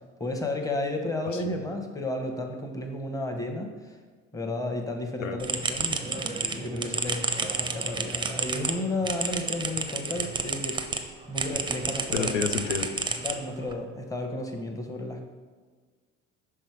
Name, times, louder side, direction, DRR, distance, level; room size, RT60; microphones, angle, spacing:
voice 1, 0.2-4.0 4.3-12.4 13.2-15.2, left 2 dB, 10° left, 3 dB, 0.9 m, -33 dB
voice 2, 1.3-1.6 5.2-5.4 12.1-12.9, left 6 dB, 85° left, 6 dB, 0.5 m, -30 dB
sound 1, 5.4-11.0 11.4-13.7, right 4 dB, 15° right, 0.5 m, -31 dB
5.5 x 3.8 x 4.7 m, 1.5 s
figure-of-eight pair, 60°, 37 cm